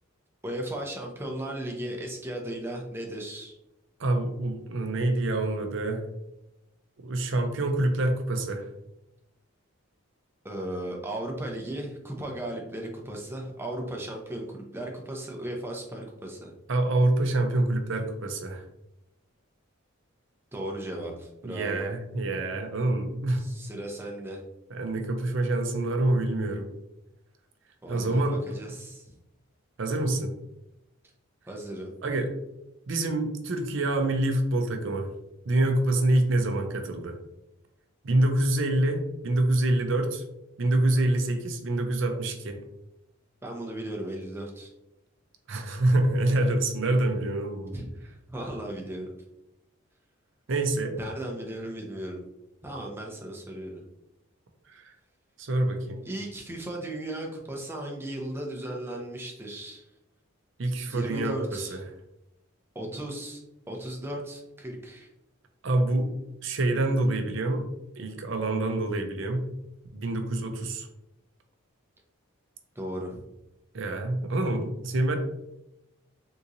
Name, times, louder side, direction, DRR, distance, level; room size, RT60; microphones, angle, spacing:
voice 1, 0.4-3.6 10.4-16.5 20.5-21.8 23.4-24.4 27.8-29.1 31.5-31.9 43.4-44.7 47.7-49.1 51.0-52.2 52.6-53.8 56.0-59.8 60.9-61.8 62.7-63.4 63.7-65.1 72.8-73.2, right 1 dB, 10° right, 0 dB, 0.5 m, -36 dB
voice 2, 4.0-6.1 7.0-8.7 16.7-18.6 21.4-23.4 24.7-26.7 27.9-28.8 29.8-30.3 32.0-32.3 32.9-35.1 35.5-37.2 38.0-40.2 40.6-42.6 45.5-47.8 50.5-50.9 54.8-54.9 55.4-56.0 60.6-61.8 65.6-66.1 66.4-67.6 68.0-69.5 69.9-70.9 73.7-75.2, right 2 dB, 60° right, 5 dB, 0.5 m, -26 dB
3.7 x 2.9 x 2.6 m, 0.89 s
head